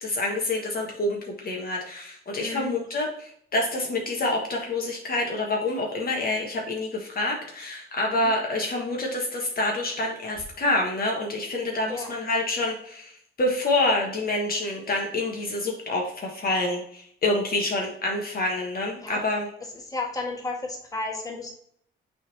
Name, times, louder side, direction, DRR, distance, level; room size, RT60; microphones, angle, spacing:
voice 1, 0.0-13.1 13.4-19.5, left 2 dB, 50° left, 1 dB, 1.4 m, -27 dB
voice 2, 2.4-2.7 8.1-8.3 11.9-12.1 19.0-19.3 19.9-21.5, left 3 dB, 20° left, 0 dB, 1.7 m, -33 dB
6.1 x 3.8 x 4.1 m, 0.65 s
cardioid pair, 90°, 20 cm